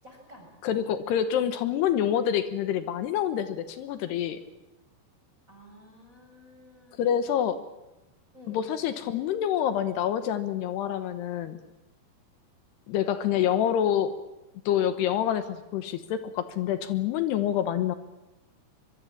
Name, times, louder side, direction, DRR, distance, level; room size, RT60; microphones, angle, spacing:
voice 1, 0.0-0.9 5.5-7.3 8.3-8.7 13.3-13.6, equal, 20° right, 1 dB, 7.0 m, -51 dB
voice 2, 0.6-4.4 7.0-7.6 8.5-11.6 12.9-14.1 14.7-18.0, left 10 dB, 80° left, 10 dB, 3.2 m, -27 dB
25.0 x 22.5 x 7.4 m, 0.97 s
omnidirectional pair, 4.9 m